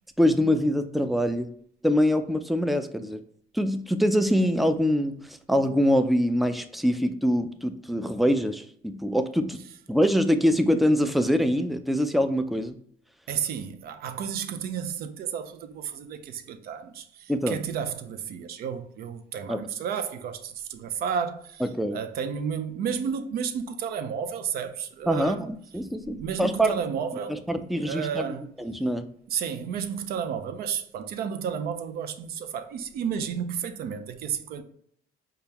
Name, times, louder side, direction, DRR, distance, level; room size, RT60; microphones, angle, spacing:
voice 1, 0.2-1.5 1.8-3.2 3.5-9.6 9.9-12.8 17.3-17.6 19.5-19.6 21.6-22.0 25.1-26.8 27.3-28.3 28.6-29.1, equal, ahead, 0.3 m, -24 dB
voice 2, 13.3-21.6 21.9-25.5 26.0-27.5 27.8-28.5 29.3-34.6, right 7 dB, 65° right, 0.5 m, -32 dB
5.0 x 2.3 x 2.9 m
cardioid pair, 110°, 17 cm